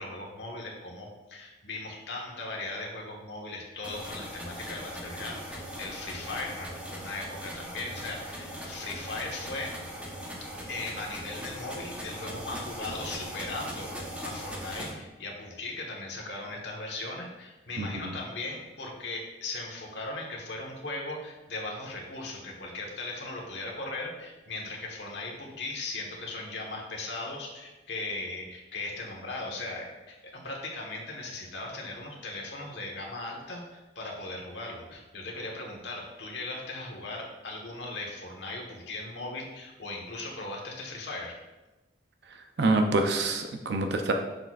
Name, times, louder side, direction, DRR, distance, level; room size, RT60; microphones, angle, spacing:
voice 1, 0.0-9.7 10.4-41.4, left 2 dB, 75° left, -1 dB, 1.4 m, -38 dB
sound 1, 3.8-14.9, equal, 10° right, 0.9 m, -40 dB
voice 2, 42.6-44.1, right 2 dB, 65° right, 5 dB, 0.5 m, -25 dB
6.6 x 6.1 x 2.4 m, 1.1 s
head